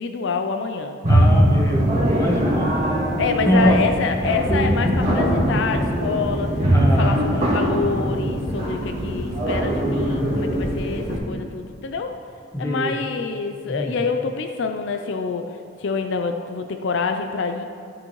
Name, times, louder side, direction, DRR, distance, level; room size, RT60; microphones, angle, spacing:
voice 1, 0.0-1.0 3.2-6.7 6.9-12.2 12.6-15.5 15.8-17.6, left 4 dB, 65° left, 6 dB, 0.5 m, -26 dB
sound 1, 1.0-11.2, equal, 35° right, 2.2 m, -21 dB
voice 2, 1.1-2.7 3.4-3.8 6.7-7.4 12.5-12.9 13.7-13.9, equal, 15° left, -1 dB, 1.1 m, -23 dB
13.5 x 6.3 x 3.1 m, 2.3 s
head